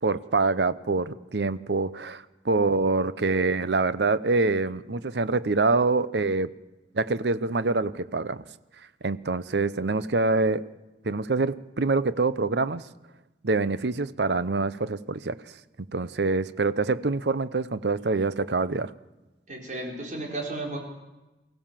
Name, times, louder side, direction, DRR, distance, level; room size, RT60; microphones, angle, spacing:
voice 1, 0.0-6.5 6.9-8.4 9.0-10.6 11.0-12.9 13.4-15.4 15.9-18.9, right 3 dB, 75° right, 15 dB, 0.8 m, -25 dB
voice 2, 19.5-20.8, right 2 dB, 45° right, 1 dB, 4.7 m, -33 dB
24.0 x 16.5 x 7.5 m, 1.0 s
head